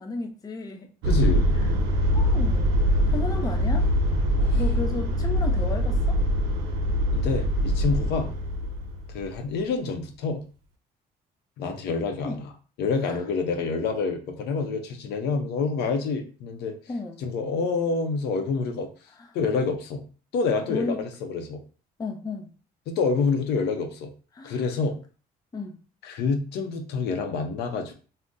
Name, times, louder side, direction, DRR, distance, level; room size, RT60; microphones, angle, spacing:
voice 1, 0.0-0.9 1.6-1.7 2.1-2.7 3.1-3.9 4.5-6.2 12.2-12.4 13.0-13.2 16.9-17.2 20.7-21.0 22.0-22.5 24.3-24.7 25.5-25.8, left 3 dB, 20° left, 3 dB, 0.5 m, -33 dB
voice 2, 1.0-1.5 4.4-4.6 7.1-8.3 9.1-10.4 11.6-12.5 12.8-16.8 17.2-18.9 19.3-20.0 20.3-21.6 22.9-24.1 24.4-25.0 26.0-27.9, left 4 dB, 80° left, 4 dB, 0.7 m, -27 dB
sound 1, 1.0-9.3, equal, 85° right, 0.6 m, -23 dB
2.6 x 2.1 x 3.5 m, 0.37 s
cardioid pair, 110°, 17 cm